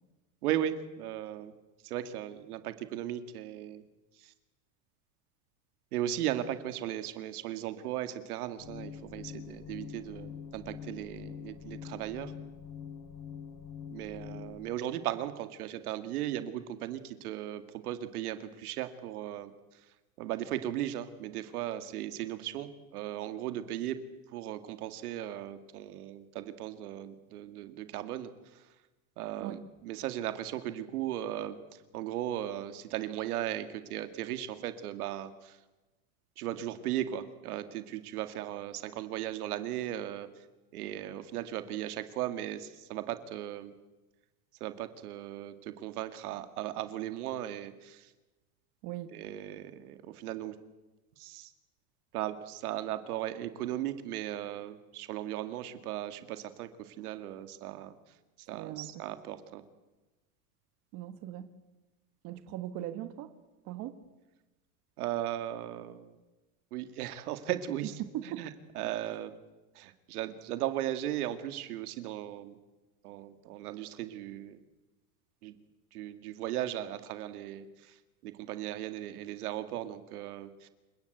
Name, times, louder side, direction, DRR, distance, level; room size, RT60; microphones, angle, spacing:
voice 1, 0.4-1.5 1.8-3.8 4.2-4.3 5.9-12.3 13.9-19.8 20.2-24.0 24.3-28.7 29.2-35.6 36.4-40.5 40.7-43.7 44.6-48.1 49.1-50.6 51.2-51.5 52.1-57.9 58.4-59.6 65.0-66.2 66.7-67.9 68.2-68.5 68.8-69.4 69.7-72.6 73.0-74.6 75.4-75.6 75.9-78.0 78.2-80.7, right 12 dB, 90° right, 10 dB, 2.2 m, -37 dB
sound 1, 8.6-14.6, left 7 dB, 85° left, 5.5 m, -45 dB
voice 2, 48.8-49.1 58.6-59.0 60.9-61.5 62.2-63.3 63.6-63.9 68.1-68.4, right 13 dB, 40° right, 9 dB, 1.7 m, -39 dB
28.5 x 17.0 x 8.2 m, 1.1 s
supercardioid pair, 160°, 44 cm